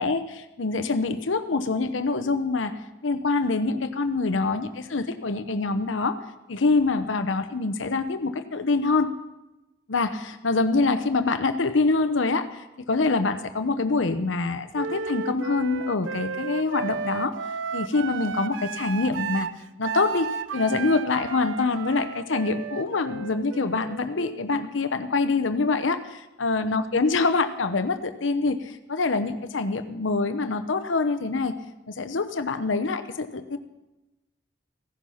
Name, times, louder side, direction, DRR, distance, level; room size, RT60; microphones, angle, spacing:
voice 1, 0.0-2.7 3.0-6.2 6.5-9.1 9.9-17.3 17.7-19.5 19.8-31.5 31.9-33.6, left 3 dB, 90° left, 10 dB, 0.8 m, -25 dB
Wind instrument woodwind instrument, 14.7-24.6, right 6 dB, 90° right, 0.5 m, -34 dB
16.0 x 11.0 x 5.7 m, 1.0 s
head